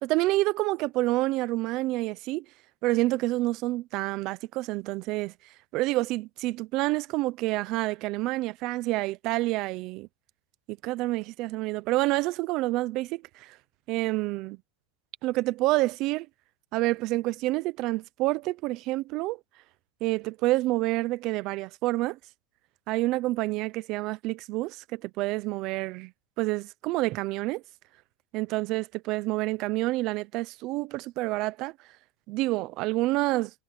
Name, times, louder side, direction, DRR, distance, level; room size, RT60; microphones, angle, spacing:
voice 1, 0.0-2.5 2.8-5.3 5.7-10.1 10.7-13.6 13.9-14.6 15.2-16.3 16.7-19.4 20.0-22.2 22.9-26.1 26.4-27.6 28.3-31.7 32.3-33.5, right 19 dB, 40° right, 0.6 m, -28 dB
supercardioid pair, 165°, 0 cm